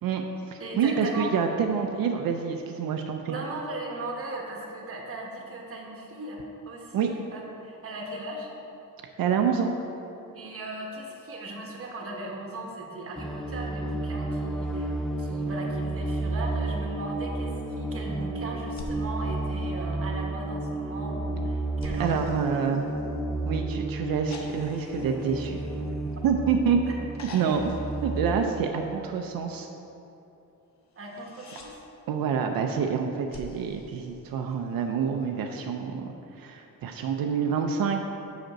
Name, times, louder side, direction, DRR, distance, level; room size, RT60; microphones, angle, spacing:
voice 1, 0.0-3.4 6.9-7.1 9.2-9.7 22.0-22.9 23.5-25.6 26.2-26.8 27.3-27.7 28.0-29.7 32.1-36.1 36.4-38.0, right 6 dB, 90° right, 4 dB, 0.5 m, -27 dB
voice 2, 0.6-1.4 3.3-8.5 10.3-17.5 17.8-22.3 31.0-31.8, right 2 dB, 40° right, 0 dB, 1.1 m, -38 dB
sound 1, 13.2-28.4, right 2 dB, ahead, 0.3 m, -32 dB
sound 2, 18.7-20.3 21.8-23.5 24.3-26.6 27.1-29.0 30.9-31.7 33.3-34.8 36.3-36.4, left 2 dB, 55° left, 0.8 m, -46 dB
5.1 x 5.1 x 6.2 m, 2.9 s
wide cardioid pair, 145°, 34 cm